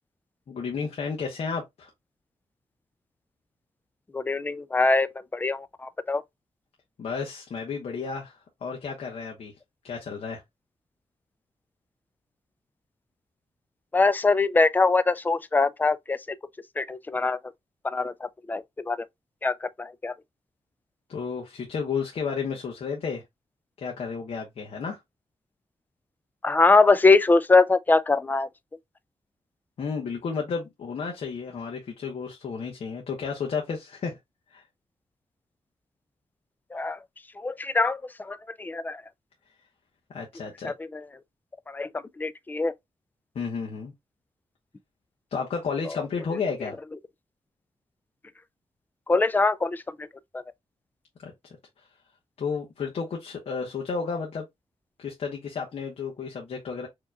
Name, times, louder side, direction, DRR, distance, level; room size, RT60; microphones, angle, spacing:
voice 1, 0.5-1.9 7.0-9.5 9.8-10.4 21.1-23.2 23.8-25.0 29.8-34.2 34.5-34.6 40.1-40.7 43.3-43.9 45.3-46.8 51.2-51.3 52.4-54.5 55.0-56.9, left 5 dB, 65° left, 1.0 m, -32 dB
voice 2, 4.1-6.2 13.9-16.2 16.8-17.4 17.8-19.0 19.4-20.1 26.4-28.5 36.7-37.0 37.4-39.0 40.6-41.0 41.7-41.9 42.2-42.7 49.1-50.1 50.3-50.4, left 3 dB, 15° left, 0.3 m, -23 dB
4.7 x 2.9 x 2.2 m
wide cardioid pair, 130°, 11 cm